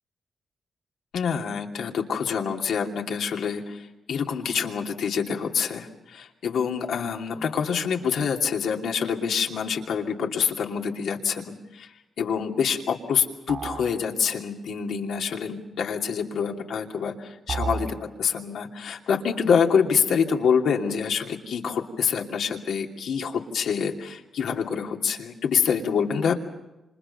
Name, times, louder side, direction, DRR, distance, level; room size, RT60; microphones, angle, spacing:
voice 1, 1.1-11.9 12.2-26.3, left 6 dB, 80° left, 2 dB, 2.7 m, -26 dB
sound 1, 13.5-14.0 17.5-18.0, right 4 dB, 60° right, 5.7 m, -31 dB
29.0 x 27.0 x 5.6 m, 0.97 s
supercardioid pair, 50°, 0 cm